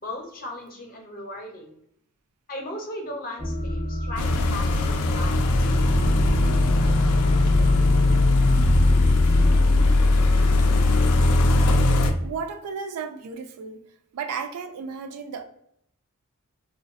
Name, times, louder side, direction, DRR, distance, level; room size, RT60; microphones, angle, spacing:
voice 1, 0.0-1.8 2.5-5.4, left 1 dB, 40° left, 1 dB, 0.6 m, -37 dB
sound 1, 3.4-9.5, equal, 10° right, 0.4 m, -29 dB
sound 2, 4.2-12.1, left 2 dB, 90° left, 0.3 m, -19 dB
voice 2, 12.2-13.8 14.1-15.4, right 5 dB, 85° right, 7 dB, 0.3 m, -33 dB
2.5 x 2.2 x 2.4 m, 0.72 s
head